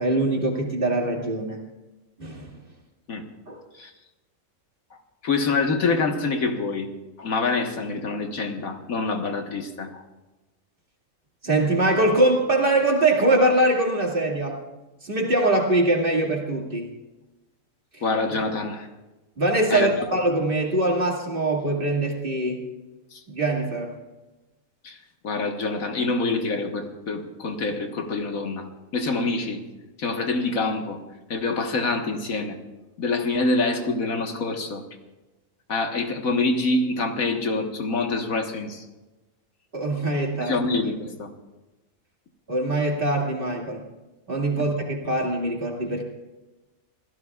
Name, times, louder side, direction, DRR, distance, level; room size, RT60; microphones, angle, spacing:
voice 1, 0.0-1.6 2.2-2.5 3.5-3.6 11.4-14.6 15.0-16.9 17.9-18.0 19.4-22.6 23.3-24.0 39.7-40.6 42.5-43.9 44.3-46.0, right 2 dB, 40° right, 0 dB, 2.5 m, -23 dB
voice 2, 5.2-6.9 7.2-10.0 18.0-18.9 19.7-19.9 23.1-23.2 24.8-25.0 25.2-28.7 28.9-29.6 30.0-31.0 31.3-32.6 33.0-34.8 35.7-38.8 40.4-41.3, left 3 dB, 80° left, 4 dB, 1.9 m, -26 dB
27.0 x 16.5 x 2.4 m, 1.1 s
omnidirectional pair, 1.4 m